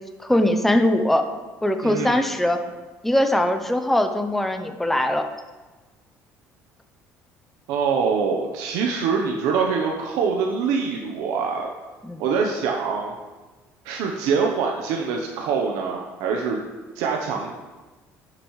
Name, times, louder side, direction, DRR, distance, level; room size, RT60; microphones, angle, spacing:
voice 1, 0.2-1.3 1.6-2.6 3.0-5.3 12.0-12.2, left 1 dB, 5° left, 6 dB, 0.6 m, -21 dB
voice 2, 1.8-2.2 7.7-11.7 12.2-13.1 13.8-16.6 17.0-17.5, right 5 dB, 90° right, 1 dB, 0.8 m, -24 dB
11.5 x 6.9 x 3.1 m, 1.3 s
cardioid pair, 135°, 5 cm